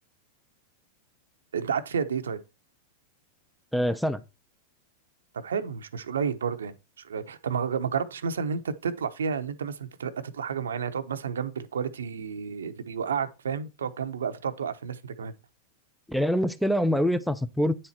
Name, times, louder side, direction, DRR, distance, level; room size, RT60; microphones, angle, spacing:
voice 1, 1.5-2.4 5.3-15.3, right 6 dB, 90° right, 0.9 m, -31 dB
voice 2, 3.7-4.2 16.1-17.8, equal, ahead, 0.6 m, -25 dB
9.4 x 4.4 x 4.3 m
hypercardioid pair, 115°, 0 cm